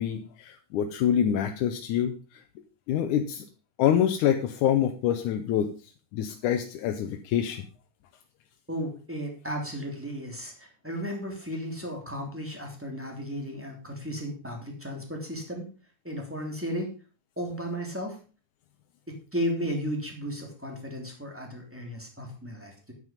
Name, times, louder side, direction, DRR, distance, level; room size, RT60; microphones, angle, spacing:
voice 1, 0.0-2.4 2.9-3.5 3.8-5.7 6.1-7.7, left 9 dB, 85° left, 5 dB, 2.3 m, -26 dB
voice 2, 8.7-15.6 16.0-16.9 17.4-18.2 19.1-22.9, equal, 5° right, 1 dB, 2.9 m, -34 dB
9.9 x 9.3 x 5.2 m, 0.36 s
omnidirectional pair, 3.5 m